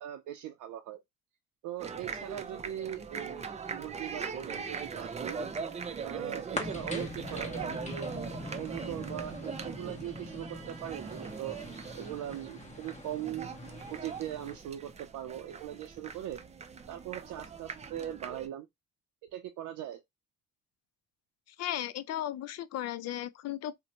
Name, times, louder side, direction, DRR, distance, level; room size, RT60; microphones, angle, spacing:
voice 1, 0.0-1.0 1.6-5.4 6.0-8.1 8.6-11.6 11.9-13.5 13.9-16.4 16.9-18.7 19.3-20.0, right 12 dB, 80° right, 0.5 m, -40 dB
sound 1, 1.8-18.5, right 5 dB, 25° right, 0.4 m, -41 dB
sound 2, 6.5-14.6, left 2 dB, 25° left, 1.0 m, -43 dB
voice 2, 21.6-23.8, left 12 dB, 60° left, 0.4 m, -35 dB
2.6 x 2.1 x 2.8 m
cardioid pair, 90°, 30 cm